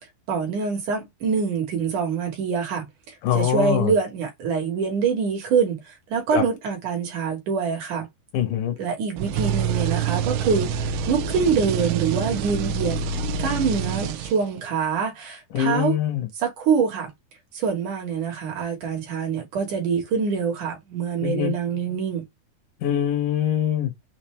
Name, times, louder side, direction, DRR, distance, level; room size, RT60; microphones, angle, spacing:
voice 1, 0.3-8.1 8.8-13.0 13.4-15.9 16.4-17.1 17.5-22.2, right 6 dB, 60° right, 2.3 m, -25 dB
voice 2, 3.2-3.9 6.3-6.4 8.3-8.8 15.5-16.3 21.2-21.5 22.8-23.9, left 10 dB, 65° left, 2.2 m, -23 dB
sound 1, 9.2-14.6, right 6 dB, 80° right, 2.5 m, -26 dB
6.5 x 2.6 x 3.2 m
omnidirectional pair, 4.8 m